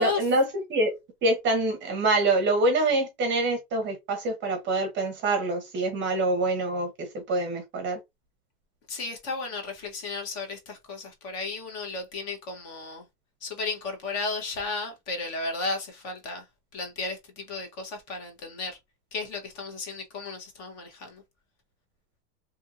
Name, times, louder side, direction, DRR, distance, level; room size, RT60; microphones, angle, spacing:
voice 1, 0.0-8.0, right 2 dB, 25° right, 0.7 m, -26 dB
voice 2, 8.9-13.0 13.4-16.4 16.7-18.8 19.1-21.2, left 3 dB, 30° left, 0.8 m, -34 dB
2.8 x 2.6 x 2.4 m
hypercardioid pair, 130°, 49 cm